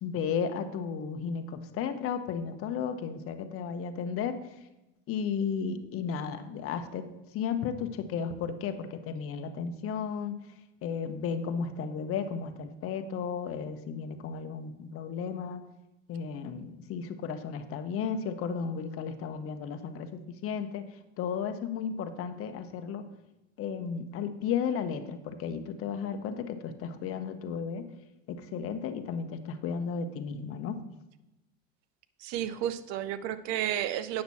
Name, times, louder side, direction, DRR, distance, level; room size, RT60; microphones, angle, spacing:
voice 1, 0.0-4.4 5.1-7.0 7.3-10.4 10.8-15.6 16.1-20.8 21.2-23.0 23.6-27.8 28.3-30.8, left 6 dB, 40° left, 8 dB, 0.9 m, -34 dB
voice 2, 32.2-34.2, right 11 dB, 55° right, 14 dB, 0.7 m, -32 dB
8.6 x 6.0 x 4.1 m, 0.96 s
supercardioid pair, 105°, 33 cm